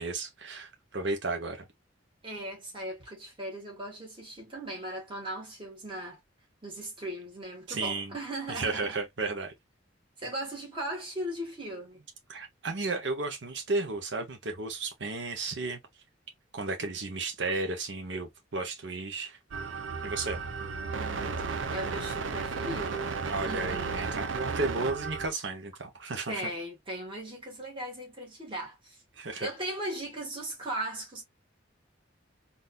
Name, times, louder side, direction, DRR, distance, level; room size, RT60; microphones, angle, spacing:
voice 1, 0.0-1.6 7.7-8.1 8.5-9.5 12.3-15.8 16.5-19.4 20.0-20.4 23.3-26.3 29.2-29.5, right 3 dB, 70° right, 1.0 m, -33 dB
voice 2, 2.2-6.2 6.6-9.0 10.2-12.1 20.6-23.2 23.5-23.9 26.3-29.0 29.4-31.2, right 1 dB, 25° right, 1.8 m, -38 dB
sound 1, 19.5-25.3, right 4 dB, 85° right, 0.6 m, -34 dB
3.9 x 2.7 x 2.4 m
head